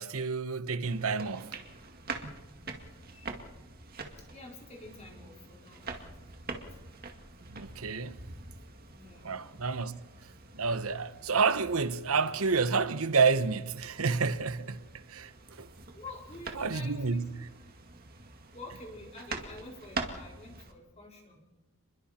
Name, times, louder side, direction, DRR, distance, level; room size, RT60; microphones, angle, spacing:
voice 1, 0.0-1.6 7.5-8.2 9.2-10.0 10.5-15.7 16.6-17.3, right 4 dB, 75° right, 1.0 m, -29 dB
sound 1, 0.8-20.7, right 3 dB, 45° right, 2.1 m, -45 dB
voice 2, 2.9-3.4 4.2-6.9 8.9-9.4 15.5-15.6 15.9-17.2 18.5-21.4, left 2 dB, 30° left, 4.7 m, -49 dB
30.0 x 22.0 x 4.4 m
head